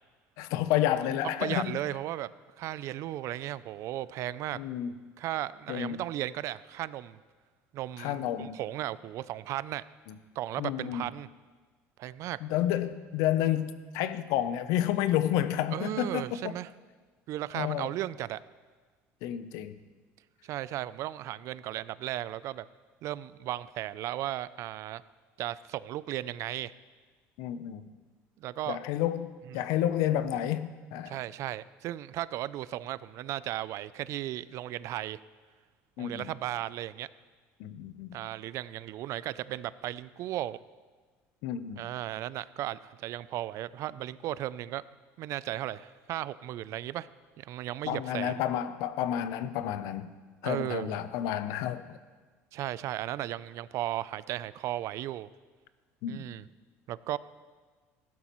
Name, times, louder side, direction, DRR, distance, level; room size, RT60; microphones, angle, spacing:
voice 1, 0.4-1.8 4.5-4.9 5.7-6.0 8.0-8.6 10.6-11.0 12.4-16.5 17.5-17.9 19.2-19.8 27.4-27.9 28.7-31.2 36.0-36.3 37.6-38.2 41.4-41.9 47.9-50.1 50.4-52.0 56.0-56.3, left 11 dB, 80° left, 13 dB, 0.6 m, -30 dB
voice 2, 1.4-2.3 2.6-4.6 5.2-7.2 7.7-9.8 10.4-11.3 12.0-12.4 15.7-16.7 17.3-18.4 20.4-22.7 23.0-25.0 25.4-26.7 28.4-28.8 29.5-29.6 31.1-35.2 36.0-37.1 38.1-40.6 41.8-44.8 45.2-47.1 47.4-48.4 50.4-51.0 52.5-55.3 56.1-56.5 56.9-57.2, right 14 dB, 60° right, 18 dB, 0.3 m, -35 dB
15.0 x 12.0 x 3.0 m, 1.4 s
cardioid pair, 110°, 6 cm